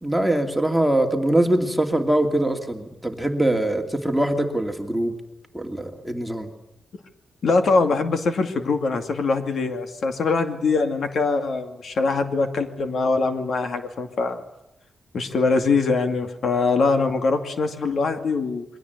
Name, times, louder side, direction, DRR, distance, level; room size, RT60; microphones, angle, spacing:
voice 1, 0.0-5.2 5.5-6.5, right 1 dB, ahead, 3 dB, 2.5 m, -22 dB
voice 2, 7.4-14.4 15.1-18.7, left 4 dB, 60° left, 6 dB, 2.5 m, -23 dB
28.0 x 22.5 x 8.2 m, 0.84 s
wide cardioid pair, 155°, 0 cm